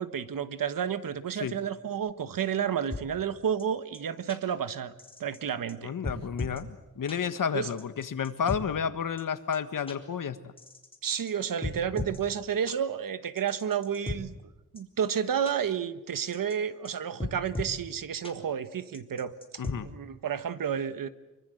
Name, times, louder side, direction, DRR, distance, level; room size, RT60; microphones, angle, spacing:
voice 1, 0.0-4.9 5.2-5.9 7.5-7.7 11.0-14.3 14.7-19.3 19.8-21.1, right 8 dB, 85° right, 12 dB, 1.4 m, -31 dB
sound 1, 2.9-3.0 3.6-3.7 3.9-4.0 4.3-4.4 5.0-5.4 5.7-5.8 6.0-6.6 7.1-7.2 7.8-8.6 9.2-9.3 9.5-9.6 9.9-10.0 10.6-11.3 11.6-12.2 12.7-12.8 13.4-14.2 14.8-14.9 15.1-15.2 15.5-15.6 16.2-16.5 16.8-16.9 17.2-17.8 18.2-18.3 18.9-19.8, left 2 dB, 15° left, 3.8 m, -36 dB
voice 2, 5.8-10.4 19.6-19.9, left 7 dB, 75° left, 11 dB, 1.6 m, -31 dB
26.0 x 24.0 x 8.0 m, 1.0 s
wide cardioid pair, 130°, 32 cm